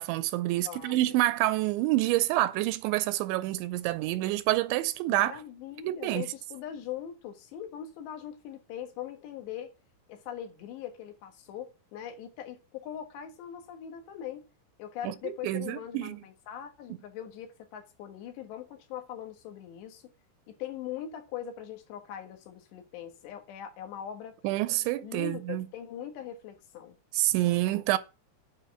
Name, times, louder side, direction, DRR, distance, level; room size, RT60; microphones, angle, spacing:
voice 1, 0.0-5.3 5.8-6.2 15.0-16.2 24.4-25.7 27.1-28.0, right 16 dB, 85° right, 2.8 m, -27 dB
voice 2, 0.5-1.2 5.1-9.7 10.1-14.4 14.8-20.1 20.5-24.4 25.0-27.0, left 10 dB, 75° left, 3.5 m, -41 dB
9.9 x 4.9 x 6.9 m
omnidirectional pair, 5.3 m